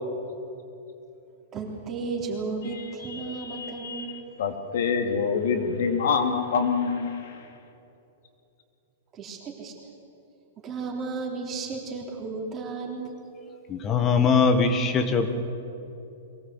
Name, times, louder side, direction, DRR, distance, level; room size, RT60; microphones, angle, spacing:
voice 1, 1.5-4.2 9.1-9.7 10.6-13.1, right 4 dB, 20° right, 0 dB, 3.5 m, -34 dB
voice 2, 3.1-7.5, left 5 dB, 70° left, 5 dB, 2.7 m, -27 dB
voice 3, 13.7-15.4, left 5 dB, 20° left, 8 dB, 1.5 m, -21 dB
22.5 x 18.0 x 7.9 m, 2.8 s
supercardioid pair, 160°, 0 cm